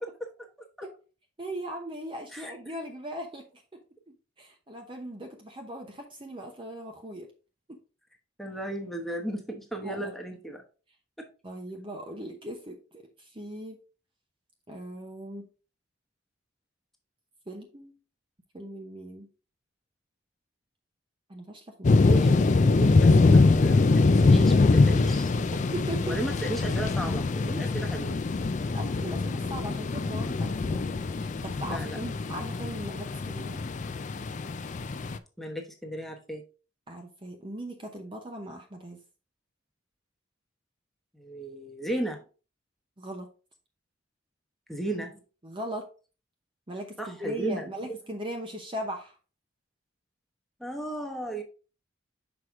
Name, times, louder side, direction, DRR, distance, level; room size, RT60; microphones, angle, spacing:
voice 1, 1.4-3.6 4.1-7.3 7.7-7.8 9.8-10.1 11.4-13.8 14.7-15.5 17.5-18.0 18.5-19.3 21.3-22.1 25.5-26.2 28.7-30.9 31.2-33.6 36.9-39.0 43.0-43.3 45.4-45.9 46.7-49.2, right 1 dB, 25° right, 3 dB, 0.8 m, -39 dB
voice 2, 8.4-10.6 11.2-11.3 22.1-25.3 26.0-28.2 31.6-32.0 35.4-36.4 41.1-42.2 44.7-45.2 47.0-47.9 50.6-51.4, right 1 dB, ahead, 1 dB, 1.1 m, -35 dB
sound 1, 21.8-35.2, left 3 dB, 40° left, 0.4 m, -23 dB
6.1 x 4.7 x 3.6 m, 0.35 s
head